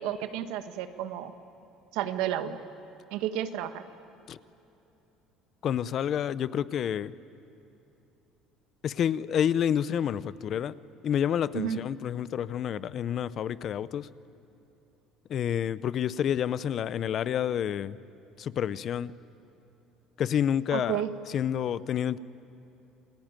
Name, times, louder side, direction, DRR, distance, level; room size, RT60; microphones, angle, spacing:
voice 1, 0.0-1.3 1.9-2.6 3.1-3.8 11.5-11.8 20.7-21.1, right 11 dB, 80° right, 9 dB, 1.5 m, -31 dB
voice 2, 5.6-7.1 8.8-10.8 11.0-14.1 15.3-18.0 18.4-19.2 20.2-22.2, left 9 dB, 40° left, 17 dB, 0.6 m, -29 dB
29.0 x 21.0 x 9.0 m, 3.0 s
cardioid pair, 150°, 0 cm